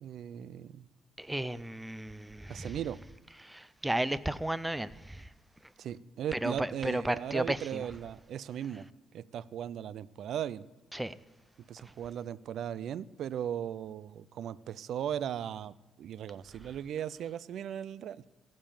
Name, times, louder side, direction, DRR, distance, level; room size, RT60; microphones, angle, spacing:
voice 1, 0.0-0.9 2.5-3.0 5.8-8.9 9.1-10.7 11.7-18.2, right 9 dB, 70° right, 0.4 m, -37 dB
voice 2, 1.2-2.8 3.4-5.3 6.3-7.9 10.9-11.1, right 1 dB, 10° right, 0.4 m, -34 dB
16.0 x 5.4 x 7.0 m
cardioid pair, 90°, 0 cm